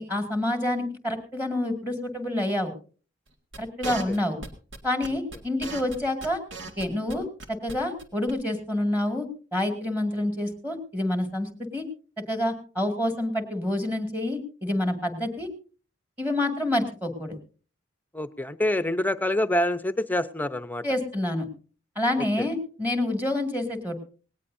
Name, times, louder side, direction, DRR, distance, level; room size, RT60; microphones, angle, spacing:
voice 1, 0.0-2.7 3.6-4.4 4.8-6.4 6.8-11.9 12.3-15.5 16.2-17.4 20.8-21.5 22.0-24.0, left 1 dB, 10° right, 5 dB, 2.2 m, -28 dB
sound 1, 3.5-7.1 7.4-7.7 8.0-8.1 8.3-8.4, right 3 dB, 80° right, 2.0 m, -37 dB
voice 2, 18.1-20.8 22.4-22.5, left 1 dB, 10° left, 12 dB, 0.7 m, -26 dB
18.5 x 18.5 x 2.7 m, 0.38 s
head